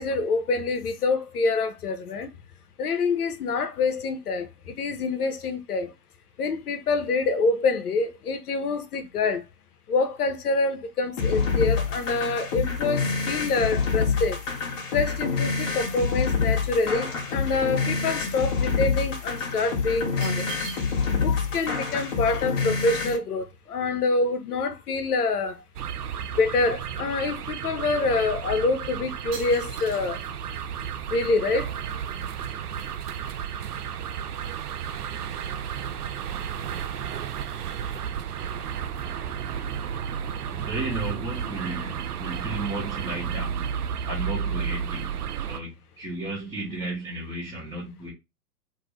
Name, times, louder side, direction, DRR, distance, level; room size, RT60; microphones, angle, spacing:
voice 1, 0.0-2.3 2.8-5.9 6.4-9.5 9.9-14.4 14.9-20.5 21.1-25.6 26.4-30.2 31.1-31.7, left 3 dB, 75° left, 0.7 m, -26 dB
sound 1, 10.7-15.8 16.3-18.5 18.8-18.9 19.7-21.3 21.6-21.7 21.8-24.0 24.5-24.6 24.9-25.7 25.9-27.2 27.8-27.9 28.5-28.8 29.3-30.0, right 5 dB, 35° right, 1.2 m, -47 dB
sound 2, 11.2-23.2, left 5 dB, 55° left, 1.0 m, -27 dB
sound 3, 25.8-45.6, right 8 dB, 75° right, 0.5 m, -32 dB
voice 2, 40.5-43.6 44.0-48.1, right 2 dB, 10° right, 0.8 m, -34 dB
2.6 x 2.5 x 3.1 m
figure-of-eight pair, 110°, 46 cm